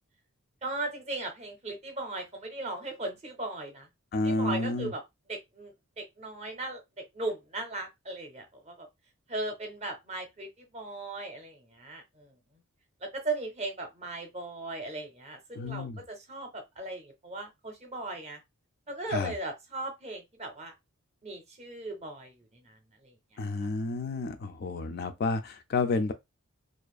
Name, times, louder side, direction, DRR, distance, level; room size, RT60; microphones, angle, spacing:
voice 1, 0.6-3.9 4.2-5.0 5.3-6.8 7.1-8.9 9.3-12.3 13.0-18.4 18.9-20.7 21.2-23.7, right 2 dB, 30° right, 0.6 m, -38 dB
voice 2, 4.1-4.9 15.5-16.0 19.1-19.3 23.4-26.1, left 3 dB, 45° left, 0.3 m, -30 dB
2.4 x 2.4 x 2.3 m
head